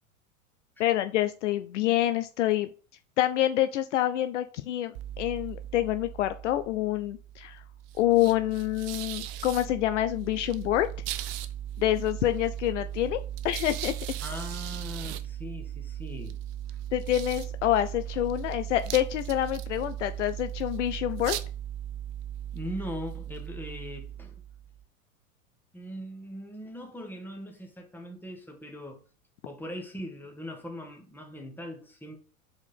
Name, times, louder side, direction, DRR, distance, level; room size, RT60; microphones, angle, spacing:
voice 1, 0.8-2.7 3.2-7.6 8.0-10.9 11.8-13.2 13.4-13.9 16.9-21.4, left 13 dB, 60° left, 0.6 m, -27 dB
sound 1, 4.9-24.8, right 11 dB, 45° right, 0.6 m, -37 dB
voice 2, 14.2-16.4 16.7-16.8 22.5-24.3 25.7-29.0 29.4-32.2, equal, 5° left, 1.4 m, -40 dB
4.7 x 4.3 x 5.4 m
figure-of-eight pair, 90°, 42 cm